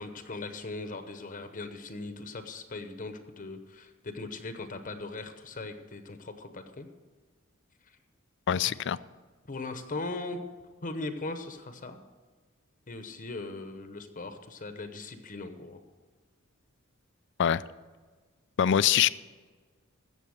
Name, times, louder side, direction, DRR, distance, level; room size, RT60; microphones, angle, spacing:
voice 1, 0.0-6.9 7.9-8.0 8.7-8.8 9.5-10.4 10.8-12.0 12.9-15.8, left 2 dB, 40° left, 8 dB, 0.9 m, -39 dB
voice 2, 8.5-9.0 17.4-17.6 18.6-19.1, left 9 dB, 60° left, 17 dB, 0.4 m, -23 dB
15.5 x 6.9 x 6.5 m, 1.4 s
head